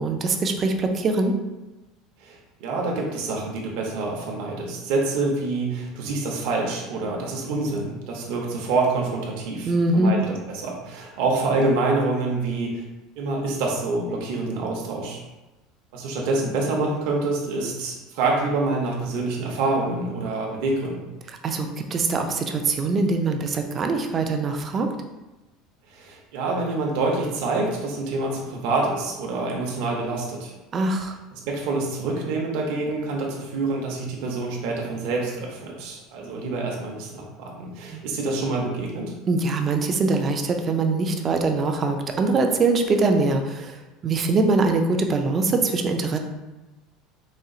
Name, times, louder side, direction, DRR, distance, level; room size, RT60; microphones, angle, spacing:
voice 1, 0.0-1.4 9.7-10.1 21.3-24.9 30.7-31.2 37.9-38.0 39.3-46.2, right 3 dB, 25° right, 5 dB, 0.3 m, -23 dB
voice 2, 2.2-10.2 10.5-12.8 13.2-15.2 15.9-21.1 25.9-30.5 31.5-39.1, right 3 dB, 60° right, -1 dB, 0.7 m, -26 dB
4.2 x 2.3 x 3.7 m, 1.1 s
cardioid pair, 170°, 0 cm